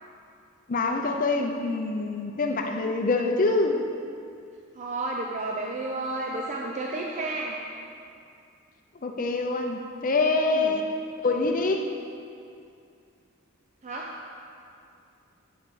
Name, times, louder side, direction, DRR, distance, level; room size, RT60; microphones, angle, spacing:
voice 1, 0.7-3.7 9.0-10.8 11.2-11.9, left 3 dB, 40° left, 4 dB, 0.6 m, -25 dB
voice 2, 4.8-7.6 10.5-10.8 13.8-14.1, right 2 dB, 35° right, -1 dB, 0.6 m, -32 dB
8.8 x 7.1 x 4.9 m, 2.5 s
head